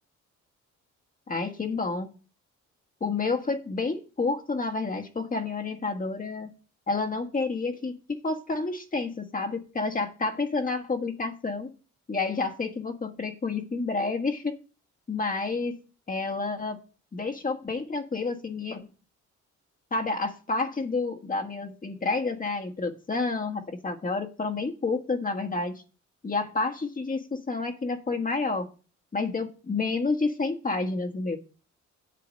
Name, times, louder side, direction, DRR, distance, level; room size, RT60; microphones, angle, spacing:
voice 1, 1.3-2.1 3.0-6.5 6.9-11.7 12.1-14.6 15.1-15.8 16.1-16.8 17.1-18.9 19.9-25.8 26.2-28.7 29.1-31.4, left 3 dB, 30° left, 1.5 m, -29 dB
8.7 x 7.6 x 5.2 m
cardioid pair, 90°, 30 cm